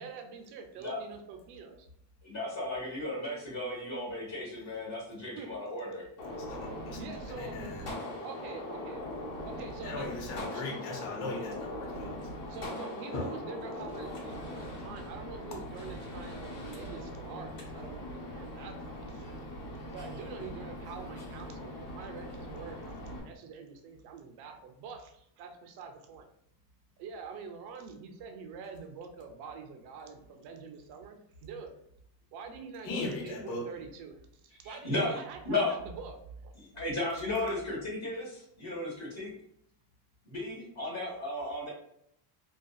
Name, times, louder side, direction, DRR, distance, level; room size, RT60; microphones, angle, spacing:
voice 1, 0.0-1.9 5.2-5.5 7.0-7.6 8.2-9.0 9.5-10.8 12.5-19.3 19.9-26.3 27.0-31.7 32.3-34.2 34.6-36.2 36.4-36.5, right 5 dB, 55° right, 4 dB, 0.5 m, -45 dB
voice 2, 2.2-6.0 34.6-35.2 35.4-35.7 36.5-39.3 40.2-41.7, left 2 dB, 35° left, -6 dB, 1.2 m, -34 dB
Gunshot gunfire, 6.2-23.2, left 1 dB, 65° left, 1.3 m, -41 dB
voice 3, 6.3-7.0 7.4-7.9 9.8-12.3 13.1-13.3 32.8-33.7, left 2 dB, 90° left, 0 dB, 0.9 m, -38 dB
2.5 x 2.3 x 2.3 m, 0.73 s
cardioid pair, 135°, 49 cm